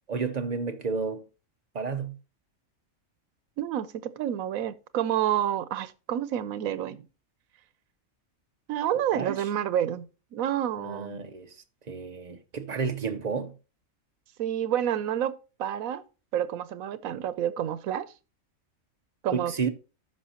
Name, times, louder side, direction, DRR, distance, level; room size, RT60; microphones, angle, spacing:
voice 1, 0.1-1.2 1.7-2.2 8.9-9.4 10.8-11.5 11.9-13.5 19.3-19.7, right 5 dB, 40° right, 0.7 m, -31 dB
voice 2, 3.6-7.1 8.7-11.2 14.4-16.0 16.3-18.1 19.2-19.5, right 10 dB, 90° right, 1.1 m, -29 dB
13.0 x 5.6 x 2.9 m
omnidirectional pair, 1.4 m